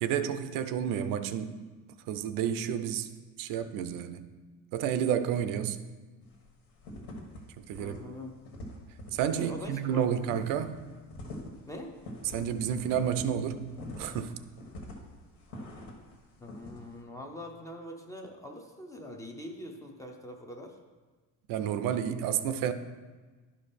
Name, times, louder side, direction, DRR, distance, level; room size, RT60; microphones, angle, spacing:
voice 1, 0.0-1.6 2.1-3.1 3.4-4.3 4.7-5.8 7.6-8.0 9.1-10.8 12.3-14.4 21.5-22.7, right 9 dB, 70° right, 10 dB, 0.6 m, -30 dB
sound 1, 6.2-6.5 6.8-7.4 7.6-8.0 8.2-16.1 16.5-16.8, left 1 dB, 75° left, 1.8 m, -44 dB
voice 2, 7.8-8.3 9.3-10.0 11.7-11.9 16.4-20.8, left 1 dB, 10° left, 2 dB, 0.6 m, -43 dB
11.5 x 5.2 x 4.2 m, 1.4 s
cardioid pair, 170°, 34 cm